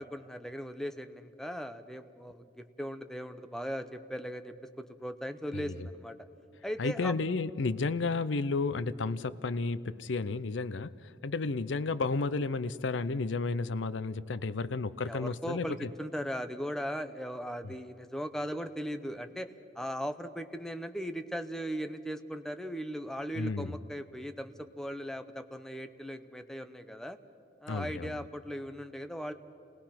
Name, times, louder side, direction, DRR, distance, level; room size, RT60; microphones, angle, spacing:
voice 1, 0.0-6.2 6.6-7.1 15.0-27.2 27.6-29.3, equal, 5° left, 8 dB, 0.7 m, -38 dB
voice 2, 5.5-5.9 6.8-15.9 17.6-17.7 23.3-23.8 27.7-28.2, left 3 dB, 80° left, 16 dB, 0.6 m, -32 dB
28.5 x 19.0 x 5.9 m, 2.7 s
head